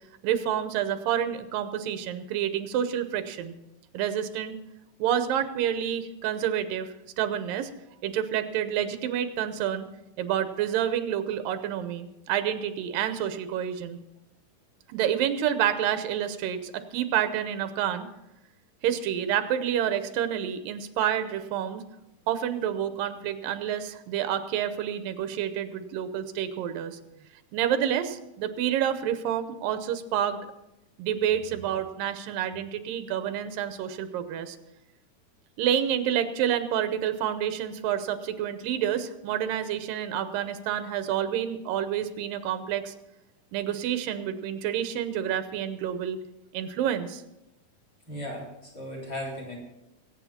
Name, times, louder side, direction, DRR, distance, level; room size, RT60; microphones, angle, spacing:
voice 1, 0.2-3.5 3.9-4.6 5.0-6.9 7.2-7.7 8.0-9.9 10.2-14.0 14.9-18.1 18.8-21.8 22.3-27.0 27.5-30.4 31.0-34.6 35.6-42.9 43.5-46.2 46.5-47.2, right 10 dB, 90° right, 10 dB, 2.6 m, -28 dB
voice 2, 48.1-49.6, left 1 dB, 30° left, -2 dB, 4.3 m, -36 dB
22.0 x 8.9 x 4.3 m, 0.93 s
omnidirectional pair, 3.9 m